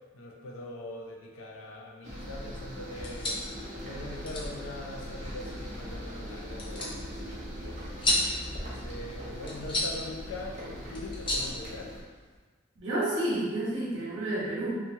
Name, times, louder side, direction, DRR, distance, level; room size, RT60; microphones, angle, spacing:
voice 1, 0.1-3.4 3.8-7.8 8.5-11.9, left 2 dB, 85° left, 1 dB, 0.4 m, -42 dB
sound 1, 2.0-12.0, equal, 40° right, 0.6 m, -40 dB
sound 2, 2.9-12.4, left 1 dB, 25° left, 0.5 m, -35 dB
voice 2, 12.8-14.7, right 1 dB, 70° right, -7 dB, 1.0 m, -30 dB
2.8 x 2.3 x 2.6 m, 1.4 s
head